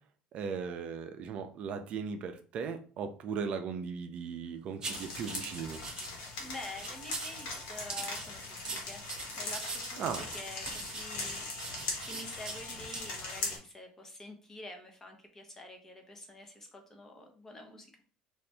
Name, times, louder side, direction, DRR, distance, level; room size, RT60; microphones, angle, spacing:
voice 1, 0.3-5.8 10.0-10.3, right 6 dB, 50° right, 7 dB, 0.4 m, -37 dB
sound 1, 4.8-6.1 6.6-7.4 7.9-12.6 12.9-13.1 13.4-13.6, right 3 dB, 30° right, 0.8 m, -42 dB
sound 2, 4.9-13.6, left 3 dB, 75° left, 1.3 m, -40 dB
voice 2, 6.4-9.0 9.3-17.9, left 1 dB, 20° left, 3 dB, 0.9 m, -47 dB
2.7 x 2.4 x 3.3 m, 0.41 s
supercardioid pair, 110°, 3 cm